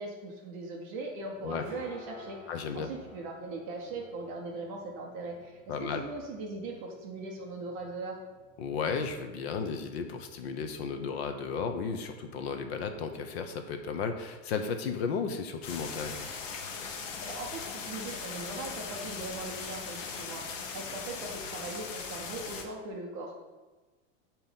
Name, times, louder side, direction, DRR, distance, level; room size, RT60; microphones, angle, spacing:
voice 1, 0.0-2.4 2.7-8.2 17.2-23.3, right 2 dB, 25° right, 0 dB, 0.5 m, -40 dB
sound 1, 1.2-18.7, left 3 dB, 15° left, 1.7 m, -57 dB
voice 2, 2.5-2.9 5.7-6.0 8.6-16.2, left 5 dB, 50° left, 6 dB, 0.7 m, -34 dB
sound 2, 15.6-22.6, left 5 dB, 65° left, 1.2 m, -39 dB
8.5 x 3.0 x 5.6 m, 1.2 s
supercardioid pair, 175°, 41 cm